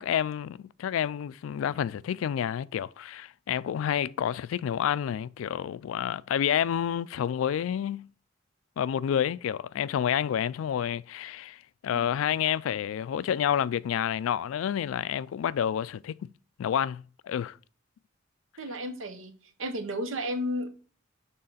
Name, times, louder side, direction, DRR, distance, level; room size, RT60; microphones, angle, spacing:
voice 1, 0.0-8.1 8.8-16.3 16.6-17.6, left 9 dB, 85° left, 0.3 m, -29 dB
voice 2, 18.6-19.3 19.6-20.7, equal, 80° right, 1.0 m, -32 dB
6.4 x 3.8 x 4.0 m
head